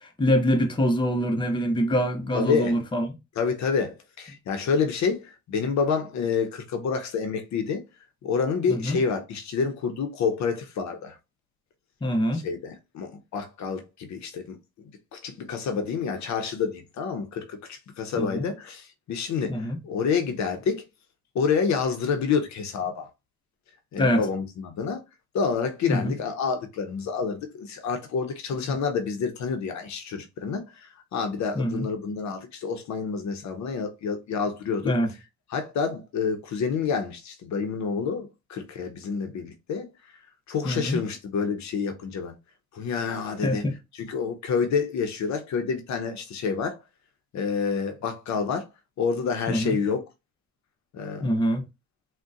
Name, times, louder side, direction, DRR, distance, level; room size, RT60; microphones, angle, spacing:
voice 1, 0.0-3.1 8.7-9.0 12.0-12.4 18.1-18.5 19.5-19.8 24.0-24.2 25.9-26.1 31.6-31.9 34.8-35.1 40.6-41.0 43.4-43.7 49.5-49.8 51.2-51.6, equal, 15° left, 0.7 m, -24 dB
voice 2, 2.3-2.8 3.4-7.8 8.2-11.2 12.3-20.8 21.3-23.1 23.9-25.0 25.3-34.9 35.5-39.9 40.5-42.3 42.7-43.6 44.0-46.8 47.3-48.7 49.0-50.0 50.9-51.2, left 5 dB, 65° left, 0.7 m, -28 dB
3.7 x 2.2 x 2.4 m
cardioid pair, 90°, 30 cm